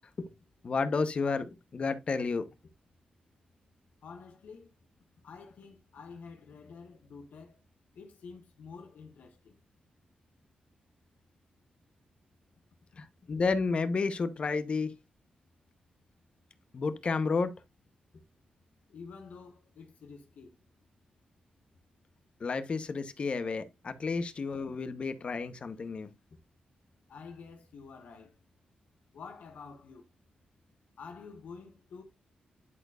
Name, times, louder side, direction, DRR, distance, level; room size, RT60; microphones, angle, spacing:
voice 1, 0.6-2.4 13.0-14.9 16.7-17.5 22.4-26.1, left 4 dB, 45° left, 1.0 m, -31 dB
voice 2, 4.0-4.7 5.2-7.6 7.9-9.6 18.9-20.6 27.1-28.3 29.1-30.0 31.0-32.0, left 5 dB, 80° left, 1.4 m, -48 dB
11.0 x 4.4 x 2.5 m
wide cardioid pair, 125°, 3 cm